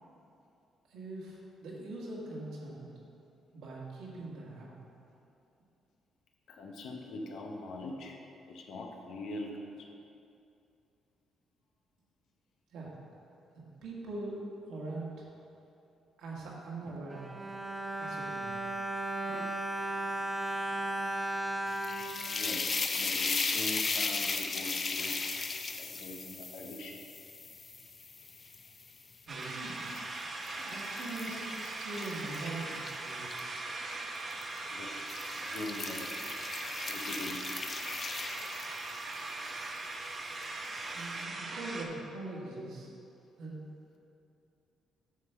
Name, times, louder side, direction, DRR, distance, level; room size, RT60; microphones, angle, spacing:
voice 1, 0.9-2.9 3.5-4.7 12.7-12.9 13.8-14.4 14.7-15.3 16.2-17.3 18.0-18.5 29.2-29.8 30.6-33.5 40.9-42.9 43.4-43.7, right 2 dB, 85° right, -5 dB, 1.7 m, -42 dB
voice 2, 6.5-8.2 8.5-9.9 22.2-22.7 22.9-25.2 25.8-27.0 34.7-34.9 35.4-36.3 36.9-37.5, left 1 dB, 75° left, 1 dB, 0.8 m, -42 dB
Bowed string instrument, 16.9-23.1 23.8-23.9 24.2-24.3, right 1 dB, 15° right, 0.5 m, -36 dB
sound 1, 21.7-28.9 29.4-33.4 34.3-34.6 35.0-39.1, left 4 dB, 35° left, 0.5 m, -36 dB
sound 2, 29.3-41.9, right 2 dB, 40° right, 0.8 m, -40 dB
9.1 x 3.2 x 6.6 m, 2.7 s
cardioid pair, 90°, 0 cm